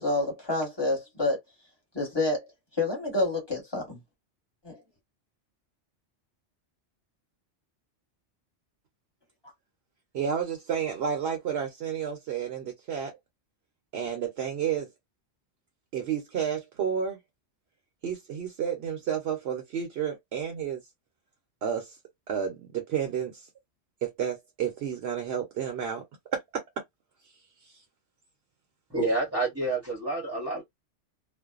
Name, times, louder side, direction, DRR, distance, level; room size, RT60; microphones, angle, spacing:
voice 1, 0.0-1.4 1.9-2.4 2.8-4.0 4.6-4.8, left 2 dB, 20° left, 1.3 m, -28 dB
voice 2, 10.1-13.2 13.9-14.9 15.9-17.2 18.0-20.8 21.6-22.0 22.3-23.5 24.0-26.0 26.3-26.6 27.6-27.8, right 8 dB, 65° right, 0.9 m, -31 dB
voice 3, 28.9-30.6, right 2 dB, 15° right, 0.8 m, -28 dB
2.5 x 2.2 x 2.3 m
omnidirectional pair, 1.2 m